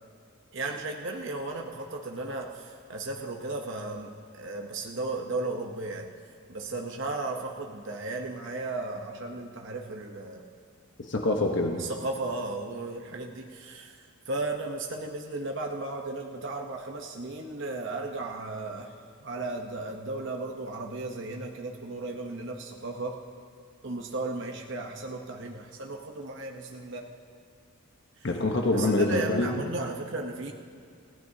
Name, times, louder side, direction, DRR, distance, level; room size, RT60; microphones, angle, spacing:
voice 1, 0.5-6.1 6.5-10.5 11.8-14.0 14.3-18.9 19.2-23.2 23.8-27.1 28.2-28.3 28.7-30.5, right 2 dB, 55° right, 1 dB, 0.9 m, -35 dB
voice 2, 11.1-11.8 28.2-29.6, left 2 dB, 50° left, 2 dB, 1.0 m, -25 dB
30.0 x 15.0 x 2.8 m, 2.3 s
head